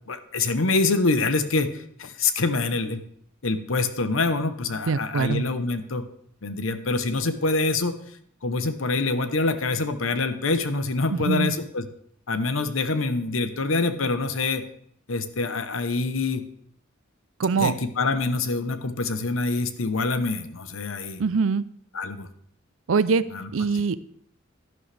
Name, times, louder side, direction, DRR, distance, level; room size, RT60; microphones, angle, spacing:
voice 1, 0.1-3.0 3.4-6.1 6.4-7.9 8.4-11.9 12.3-14.6 15.1-16.4 17.6-21.2 21.9-22.3 23.3-23.8, left 3 dB, 80° left, 10 dB, 0.9 m, -25 dB
voice 2, 4.9-5.4 11.1-11.6 17.4-17.7 21.2-21.6 22.9-23.2 23.5-24.0, right 5 dB, 80° right, 16 dB, 0.5 m, -23 dB
11.0 x 11.0 x 3.4 m, 0.66 s
head